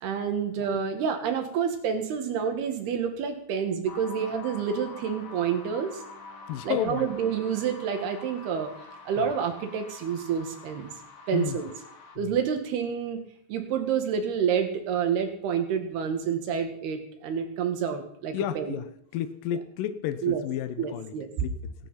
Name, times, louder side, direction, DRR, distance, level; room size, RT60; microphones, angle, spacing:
voice 1, 0.0-6.0 6.6-8.7 9.1-10.9 11.3-11.7 12.2-13.2 13.5-18.8 20.2-20.4 20.8-21.5, right 7 dB, 70° right, 6 dB, 3.7 m, -28 dB
sound 1, 3.8-12.2, left 3 dB, 50° left, 2.8 m, -45 dB
voice 2, 6.5-7.1 9.2-9.3 11.3-11.6 12.2-12.4 18.3-21.1 21.4-21.7, left 11 dB, 75° left, 10 dB, 2.0 m, -32 dB
18.5 x 11.5 x 5.8 m, 0.69 s
omnidirectional pair, 4.9 m